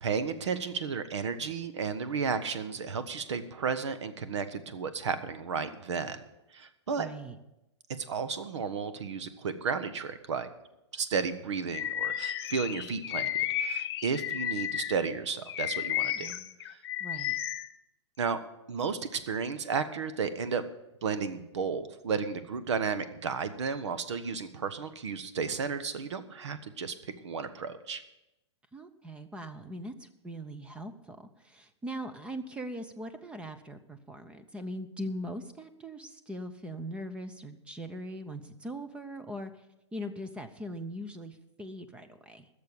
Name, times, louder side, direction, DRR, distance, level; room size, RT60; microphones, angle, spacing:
voice 1, 0.0-6.2 6.5-7.1 7.9-10.5 10.9-16.3 18.2-18.4 18.7-20.6 21.0-28.0, right 5 dB, 75° right, 13 dB, 1.2 m, -33 dB
voice 2, 7.0-7.4 16.1-16.6 17.0-17.4 28.7-39.7 39.9-42.5, equal, 5° right, 10 dB, 0.6 m, -41 dB
Bird vocalization bird call bird song, 11.7-15.0 15.5-17.7, left 11 dB, 55° left, 0.9 m, -33 dB
15.5 x 6.8 x 7.0 m, 0.93 s
hypercardioid pair, 145°, 15 cm